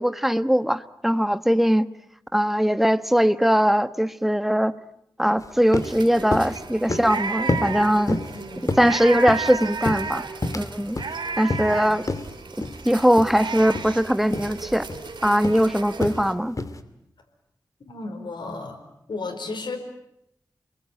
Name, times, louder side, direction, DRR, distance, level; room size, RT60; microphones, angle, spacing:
voice 1, 0.0-1.9 2.3-4.7 5.2-8.2 8.8-10.2 10.5-11.0 11.4-12.0 12.8-14.9 15.2-16.6, equal, 5° right, 12 dB, 1.2 m, -20 dB
sound 1, 5.4-5.5 5.7-6.0 6.3-6.6 6.9-7.2 7.5-7.7 8.1-8.4 8.7-9.5 9.9-10.7 11.0-11.1 11.5-11.8 12.1-12.2 12.6-12.8 13.2-13.4 13.7-13.9 14.3-14.5 14.9-15.1 15.4-15.6 16.0-16.2 16.6-16.8, left 2 dB, 45° left, 2.4 m, -28 dB
sound 2, 5.8-16.3, right 4 dB, 85° right, 2.6 m, -33 dB
voice 2, 8.3-8.8 11.7-11.8 17.8-18.8 19.1-19.8, left 3 dB, 90° left, 3 dB, 4.8 m, -34 dB
29.5 x 21.5 x 9.2 m, 0.79 s
wide cardioid pair, 75°, 8 cm